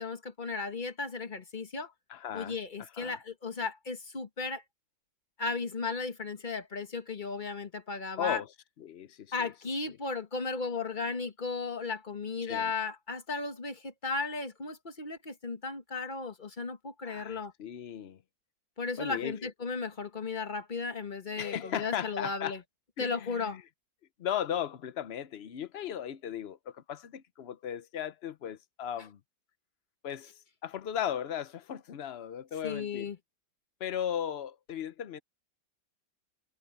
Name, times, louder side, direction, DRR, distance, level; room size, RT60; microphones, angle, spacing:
voice 1, 0.0-1.9 2.3-4.6 5.4-8.4 9.3-17.5 18.8-22.6 23.0-23.6 32.6-33.2, left 4 dB, 25° left, 1.6 m, -35 dB
voice 2, 2.1-3.2 8.2-8.5 8.8-9.5 12.4-12.7 17.0-18.2 19.0-19.4 21.4-22.6 23.0-23.6 24.2-29.2 30.0-33.1 33.8-35.2, left 9 dB, 90° left, 0.5 m, -37 dB
omnidirectional pair, 2.1 m